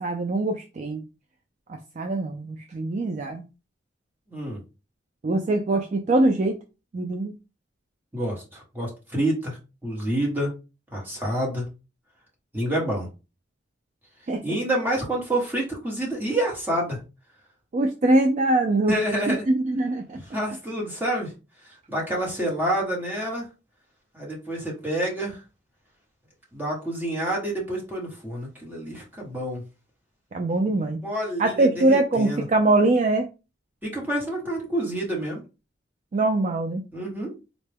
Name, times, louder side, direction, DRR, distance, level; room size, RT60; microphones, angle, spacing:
voice 1, 0.0-1.0 1.7-3.4 5.2-6.6 6.9-7.3 14.3-14.4 17.7-18.9 19.3-20.2 30.3-31.0 31.4-33.3 36.1-36.8, right 2 dB, 35° right, 4 dB, 0.3 m, -23 dB
voice 2, 4.3-4.6 8.1-10.5 10.9-11.6 12.5-13.1 14.4-17.0 18.9-19.4 20.3-21.3 21.9-23.4 24.1-25.4 26.5-29.6 30.6-32.4 33.8-35.4 36.9-37.3, right 1 dB, 10° right, -2 dB, 1.1 m, -28 dB
4.0 x 2.2 x 3.3 m, 0.30 s
head